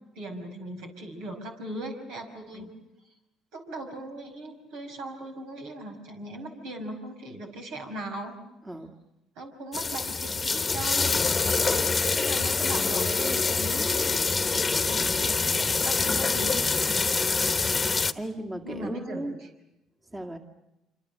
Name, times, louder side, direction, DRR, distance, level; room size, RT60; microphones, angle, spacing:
voice 1, 0.2-2.7 3.5-8.4 9.4-11.2 11.6-16.6 18.6-19.2, right 1 dB, 80° right, 3 dB, 5.4 m, -39 dB
voice 2, 8.6-9.0 11.5-11.8 16.9-17.2 18.1-19.4 20.0-20.4, right 1 dB, 20° right, 4 dB, 1.9 m, -37 dB
sound 1, 9.7-18.1, left 4 dB, 25° left, 1.2 m, -25 dB
26.5 x 26.5 x 6.7 m, 0.92 s
supercardioid pair, 75°, 0 cm